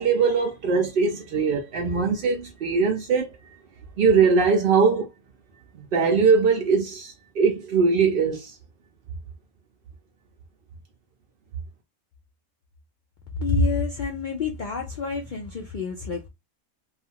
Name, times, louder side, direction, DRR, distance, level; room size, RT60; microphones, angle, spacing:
voice 1, 0.0-3.4 4.0-5.1 5.7-8.6, right 5 dB, 65° right, 0.5 m, -21 dB
voice 2, 13.4-16.3, left 3 dB, 90° left, 0.4 m, -27 dB
2.4 x 2.4 x 2.7 m
omnidirectional pair, 1.4 m